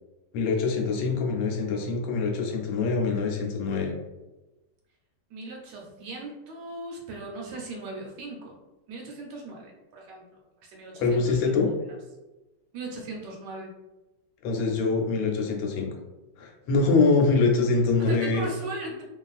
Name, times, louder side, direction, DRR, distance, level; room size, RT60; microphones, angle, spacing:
voice 1, 0.3-3.9 11.0-11.7 14.4-15.9 16.4-18.5, left 4 dB, 85° left, 1 dB, 1.3 m, -24 dB
voice 2, 5.3-8.6 8.9-10.3 10.6-11.5 12.7-13.7 18.0-19.0, right 2 dB, 75° right, -1 dB, 1.2 m, -38 dB
2.9 x 2.4 x 2.3 m, 1.1 s
omnidirectional pair, 2.1 m